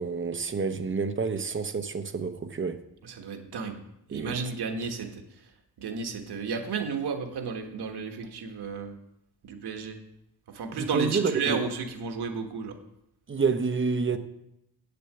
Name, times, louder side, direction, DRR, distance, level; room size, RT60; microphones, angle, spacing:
voice 1, 0.0-2.8 4.1-4.4 10.8-11.6 13.3-14.2, right 5 dB, 30° right, 0.8 m, -28 dB
voice 2, 3.0-3.8 4.1-5.2 5.8-8.9 9.4-10.0 10.5-12.8, right 5 dB, 85° right, 1.4 m, -33 dB
8.2 x 6.8 x 7.7 m
wide cardioid pair, 115°, 38 cm